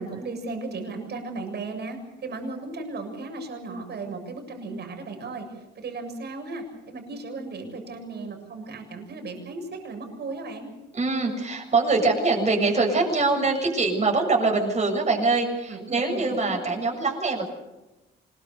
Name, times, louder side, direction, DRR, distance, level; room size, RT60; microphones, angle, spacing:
voice 1, 0.0-5.5 5.8-10.7 15.7-16.6, right 3 dB, 55° right, 4 dB, 7.3 m, -36 dB
voice 2, 10.9-17.5, right 3 dB, 35° right, 2 dB, 7.3 m, -23 dB
25.0 x 22.0 x 6.9 m, 1.0 s
cardioid pair, 90°, 20 cm